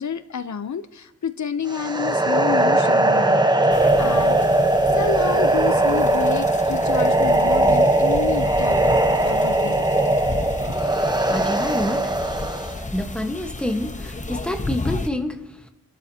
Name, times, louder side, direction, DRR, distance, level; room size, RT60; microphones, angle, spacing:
voice 1, 0.0-4.4 4.9-10.1, left 7 dB, 75° left, 12 dB, 0.7 m, -30 dB
sound 1, 1.7-12.8, right 1 dB, 15° right, 0.9 m, -19 dB
sound 2, 3.7-15.1, left 2 dB, 25° left, 0.9 m, -33 dB
voice 2, 10.7-12.1 12.9-15.4, left 1 dB, 5° left, 5 dB, 1.2 m, -28 dB
28.5 x 12.5 x 2.8 m, 0.95 s
wide cardioid pair, 85°, 29 cm